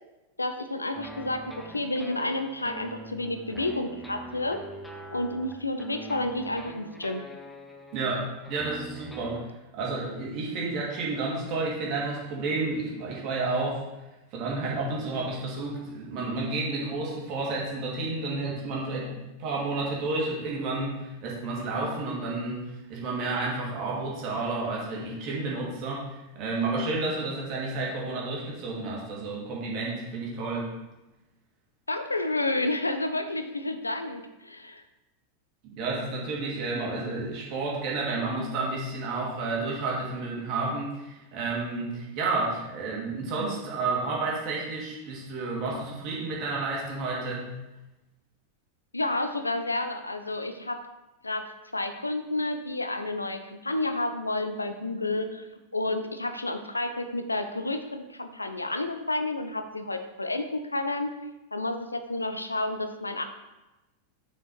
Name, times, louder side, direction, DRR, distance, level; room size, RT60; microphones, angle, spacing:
voice 1, 0.4-4.6 5.1-7.2 31.9-34.8 48.9-50.8 51.2-55.5 55.7-61.1 61.5-63.2, left 2 dB, 80° left, 8 dB, 0.6 m, -30 dB
sound 1, 1.0-9.4, equal, 5° left, 0.9 m, -43 dB
voice 2, 7.9-9.4 9.7-13.8 14.3-30.7 35.6-47.5, right 3 dB, 40° right, -3 dB, 2.5 m, -31 dB
6.9 x 5.9 x 4.5 m, 1.0 s
figure-of-eight pair, 90°, 0 cm